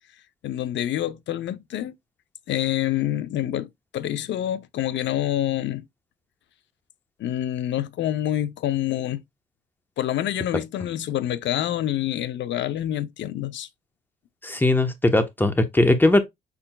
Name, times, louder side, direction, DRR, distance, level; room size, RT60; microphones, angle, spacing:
voice 1, 0.4-1.9 2.5-5.9 7.2-9.2 10.0-13.7, left 12 dB, 65° left, 0.6 m, -27 dB
voice 2, 14.4-16.2, left 2 dB, 10° left, 0.9 m, -19 dB
5.1 x 4.6 x 2.2 m
cardioid pair, 90°, 20 cm